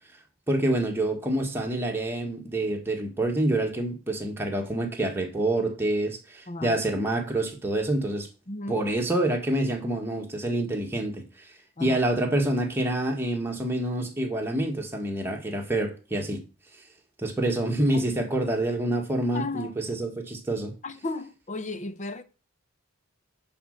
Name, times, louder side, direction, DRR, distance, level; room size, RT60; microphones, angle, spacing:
voice 1, 0.5-8.3 8.7-11.2 11.8-16.4 17.2-20.7, right 1 dB, 10° right, 1.6 m, -27 dB
voice 2, 6.5-6.8 8.5-8.8 11.8-12.0 17.5-17.6 17.9-18.3 19.3-19.8 20.8-22.2, left 2 dB, 35° left, 0.8 m, -35 dB
10.5 x 4.4 x 6.5 m
head